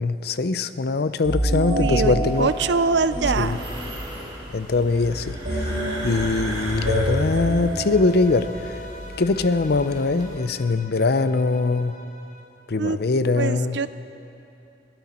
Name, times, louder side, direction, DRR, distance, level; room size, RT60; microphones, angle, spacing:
voice 1, 0.0-2.5 3.4-3.6 4.5-8.9 9.2-12.0 12.7-13.8, left 3 dB, 60° left, 13 dB, 0.6 m, -22 dB
sound 1, 1.2-4.2 5.4-8.7, right 1 dB, 50° right, 3.4 m, -28 dB
voice 2, 1.5-3.6 12.8-13.0 13.4-13.9, right 4 dB, 70° right, 14 dB, 0.5 m, -24 dB
sound 2, 2.2-10.3, right 1 dB, 25° right, 2.8 m, -35 dB
Bowed string instrument, 7.5-12.5, left 2 dB, 40° left, 1.2 m, -44 dB
20.5 x 16.0 x 4.3 m, 2.9 s
head